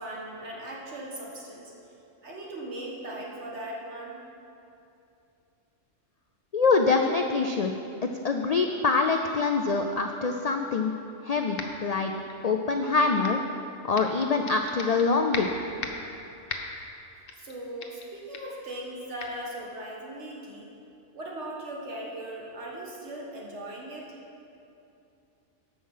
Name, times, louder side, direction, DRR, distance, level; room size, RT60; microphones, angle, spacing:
voice 1, 0.0-1.7 2.2-4.2 17.4-20.7 21.1-24.2, right 1 dB, 65° right, -3 dB, 2.0 m, -38 dB
voice 2, 6.5-7.7 8.0-10.9 11.2-12.1 12.4-13.4 13.9-15.5, left 4 dB, 65° left, 4 dB, 0.4 m, -25 dB
sound 1, 11.6-11.9 12.3-13.5 14.0-15.1 15.3-16.1 16.5-16.9 17.3-17.5 17.8-18.1 18.3-18.6 19.2-19.3, left 5 dB, 90° left, 1.3 m, -37 dB
13.5 x 5.8 x 5.6 m, 2.7 s
omnidirectional pair, 1.3 m